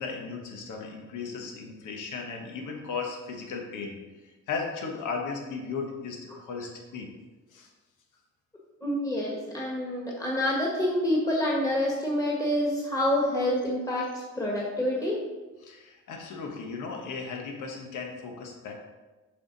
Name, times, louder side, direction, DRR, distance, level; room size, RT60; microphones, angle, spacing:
voice 1, 0.0-4.0 4.2-7.1 7.5-7.7 15.6-18.7, left 5 dB, 80° left, 2 dB, 1.4 m, -36 dB
voice 2, 8.8-15.2, left 1 dB, 10° left, -3 dB, 1.7 m, -27 dB
6.7 x 5.8 x 4.1 m, 1.2 s
cardioid pair, 90°, 30 cm